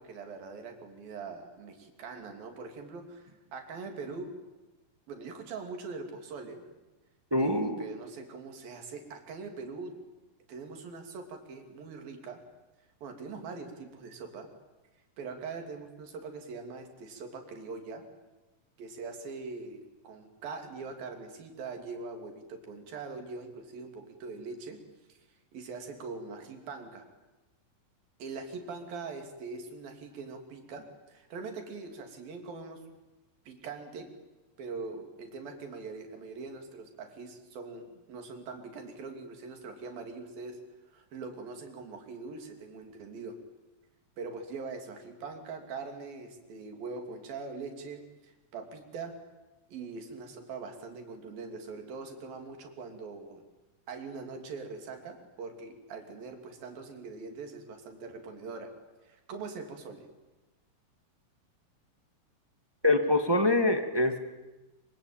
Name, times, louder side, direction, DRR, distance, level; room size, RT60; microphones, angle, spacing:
voice 1, 0.0-4.3 5.1-6.6 7.4-9.9 10.5-12.4 13.0-14.5 15.2-18.0 18.8-24.8 25.1-25.2 25.5-27.1 28.2-32.8 33.5-34.1 34.6-40.6 40.9-43.4 44.2-49.1 49.7-53.4 53.9-58.7 59.0-60.1, right 4 dB, 90° right, 4 dB, 4.9 m, -42 dB
voice 2, 7.3-7.8 62.8-64.2, left 2 dB, 20° right, 6 dB, 0.7 m, -25 dB
25.5 x 25.0 x 8.9 m, 1.1 s
omnidirectional pair, 4.0 m